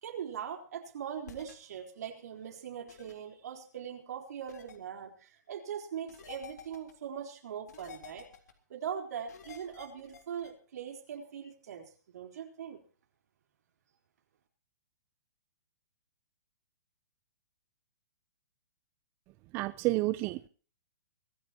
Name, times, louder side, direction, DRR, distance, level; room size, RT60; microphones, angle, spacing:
voice 1, 0.0-8.3 8.7-12.8, right 8 dB, 65° right, 2 dB, 3.9 m, -41 dB
sound 1, 1.3-1.5 2.9-3.1 4.5-4.8 6.1-6.9 7.7-8.5 9.3-10.5, left 7 dB, 75° left, 3.5 m, -50 dB
voice 2, 19.5-20.5, right 20 dB, 25° right, 13 dB, 0.6 m, -30 dB
24.0 x 14.0 x 2.9 m, 0.41 s
hypercardioid pair, 150°, 9 cm